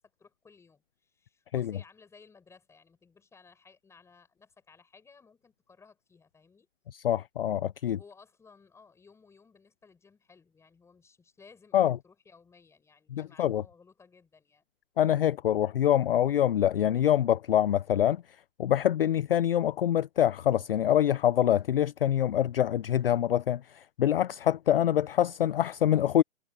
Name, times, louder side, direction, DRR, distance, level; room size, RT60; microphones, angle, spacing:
voice 1, 0.0-6.7 7.8-14.6, left 5 dB, 5° left, 7.5 m, -58 dB
voice 2, 6.9-8.0 11.7-12.0 13.1-13.6 15.0-18.2 18.6-26.2, left 11 dB, 45° left, 0.6 m, -25 dB
hypercardioid pair, 155°, 40 cm